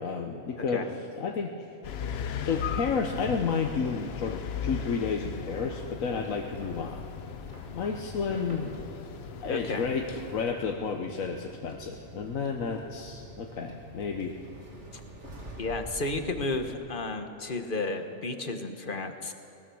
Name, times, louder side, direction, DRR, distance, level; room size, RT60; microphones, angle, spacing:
voice 1, 0.0-1.5 2.4-7.1 7.7-8.8 9.4-14.4, left 5 dB, 85° left, 2 dB, 1.4 m, -31 dB
sound 1, 1.8-10.4, left 7 dB, 55° left, 0.9 m, -37 dB
Jail Prison Ambience, 3.8-16.7, right 1 dB, 60° right, 2.9 m, -46 dB
voice 2, 9.5-9.9 15.6-19.3, left 3 dB, 40° left, 6 dB, 1.4 m, -32 dB
20.0 x 18.5 x 7.1 m, 2.7 s
omnidirectional pair, 1.4 m